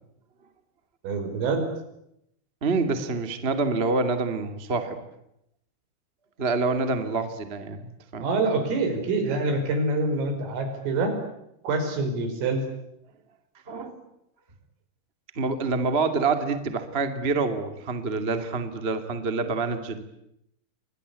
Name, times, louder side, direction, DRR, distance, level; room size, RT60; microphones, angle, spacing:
voice 1, 1.0-1.6 8.2-11.2 11.6-12.6, right 3 dB, 85° right, 7 dB, 7.9 m, -26 dB
voice 2, 2.6-5.0 6.4-8.3 13.7-14.0 15.3-20.0, right 4 dB, 30° right, 8 dB, 1.2 m, -27 dB
29.5 x 24.0 x 8.4 m, 0.80 s
omnidirectional pair, 5.8 m